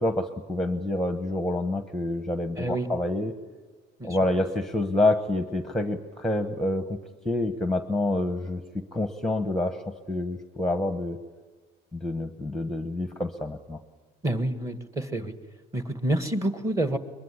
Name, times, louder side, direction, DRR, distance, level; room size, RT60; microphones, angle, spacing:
voice 1, 0.0-3.3 4.0-7.0 7.2-9.8 10.1-11.2 11.9-13.8, left 1 dB, ahead, 8 dB, 1.1 m, -27 dB
voice 2, 2.6-2.9 4.0-4.2 14.2-15.4 15.7-17.0, right 1 dB, 15° right, 9 dB, 1.7 m, -28 dB
23.5 x 22.0 x 9.9 m, 1.3 s
cardioid pair, 135°, 20 cm